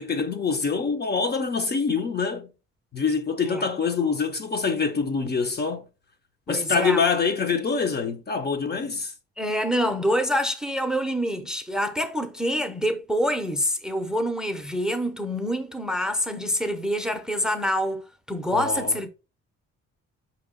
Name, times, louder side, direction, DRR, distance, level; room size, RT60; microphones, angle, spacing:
voice 1, 0.0-2.5 2.9-5.8 6.5-9.1 18.5-19.0, left 5 dB, 35° left, 0.6 m, -25 dB
voice 2, 6.5-7.0 9.4-19.1, equal, ahead, 0.6 m, -26 dB
4.8 x 2.9 x 3.6 m
cardioid pair, 90°, 30 cm